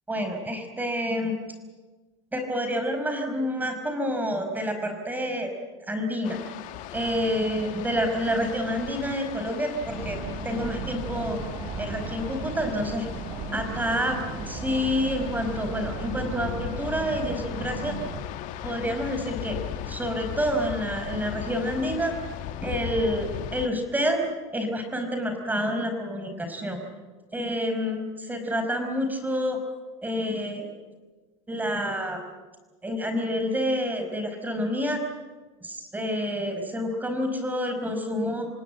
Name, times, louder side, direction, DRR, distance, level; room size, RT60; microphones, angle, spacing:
voice 1, 0.1-1.4 2.3-5.5 5.9-6.4 6.9-10.2 10.4-11.4 11.8-13.0 13.5-17.9 18.6-19.6 19.9-22.1 22.6-24.2 24.5-26.8 27.3-29.6 30.0-30.7 31.5-32.2 32.8-35.0 35.6-38.5, equal, 10° right, 6 dB, 4.9 m, -28 dB
sound 1, 6.2-23.7, left 12 dB, 60° left, 1.7 m, -38 dB
sound 2, 9.8-18.2, right 3 dB, 35° right, 6.7 m, -35 dB
26.5 x 18.5 x 8.9 m, 1.3 s
supercardioid pair, 100°, 15 cm